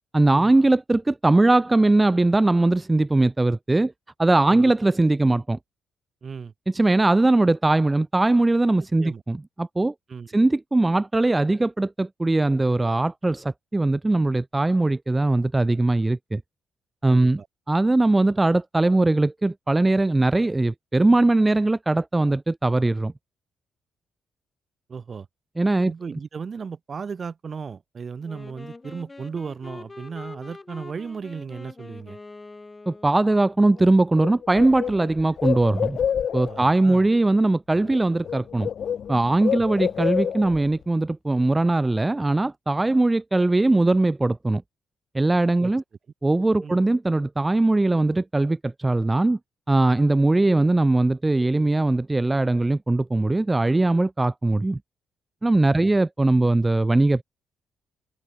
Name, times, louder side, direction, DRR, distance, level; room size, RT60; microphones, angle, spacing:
voice 1, 0.1-3.9 4.2-5.6 6.7-9.9 10.3-16.4 17.0-17.4 17.7-23.1 25.6-25.9 32.9-36.0 36.3-38.7 39.1-44.6 45.1-45.8 46.2-49.4 49.7-54.8 55.4-57.2, right 2 dB, 15° right, 0.5 m, -20 dB
voice 2, 6.2-6.5 9.0-9.2 10.1-10.3 17.1-17.5 24.9-25.3 25.8-32.2 36.4-37.1 39.6-39.8 45.6-45.7 46.6-46.8 55.7-55.9, right 5 dB, 40° right, 4.3 m, -36 dB
Wind instrument woodwind instrument, 28.2-33.4, left 3 dB, 20° left, 6.0 m, -43 dB
Bird, 33.8-33.9 34.2-36.7 37.8-38.0 38.2-40.7, left 8 dB, 60° left, 0.6 m, -28 dB
cardioid pair, 100°, 0 cm